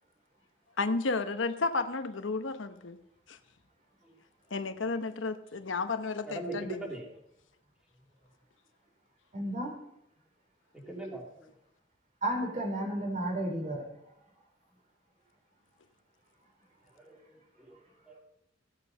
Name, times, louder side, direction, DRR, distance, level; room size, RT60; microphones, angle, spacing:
voice 1, 0.8-3.0 3.3-3.4 4.5-6.9, left 3 dB, 80° left, 0.9 m, -32 dB
voice 2, 6.3-7.0 10.7-11.5 16.9-17.2 17.6-18.2, right 2 dB, 5° right, 3.2 m, -41 dB
voice 3, 9.3-9.7 12.2-13.8, right 1 dB, 40° right, 4.1 m, -32 dB
15.5 x 8.3 x 5.5 m
head